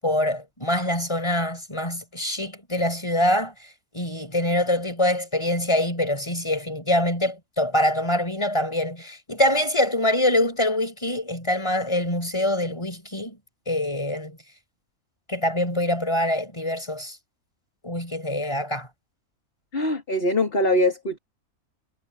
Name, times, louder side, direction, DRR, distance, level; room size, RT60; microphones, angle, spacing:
voice 1, 0.0-3.5 3.9-13.4 13.7-14.4 15.3-17.2 17.8-18.9, left 1 dB, 20° left, 6.7 m, -24 dB
voice 2, 19.7-21.2, left 1 dB, 40° left, 2.8 m, -22 dB
omnidirectional pair, 1.6 m